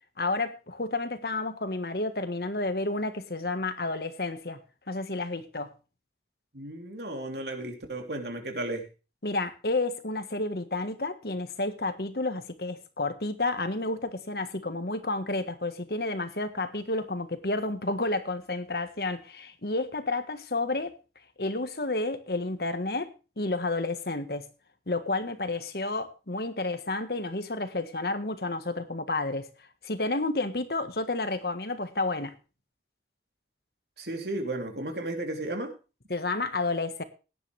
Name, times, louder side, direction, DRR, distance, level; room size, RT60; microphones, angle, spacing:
voice 1, 0.2-4.6 4.9-5.7 9.2-20.9 21.4-24.5 24.9-29.5 29.8-32.4 36.1-37.0, left 2 dB, 60° left, 1.5 m, -31 dB
voice 2, 6.5-8.8 34.0-35.7, right 1 dB, 70° right, 3.4 m, -34 dB
17.0 x 10.5 x 3.4 m
head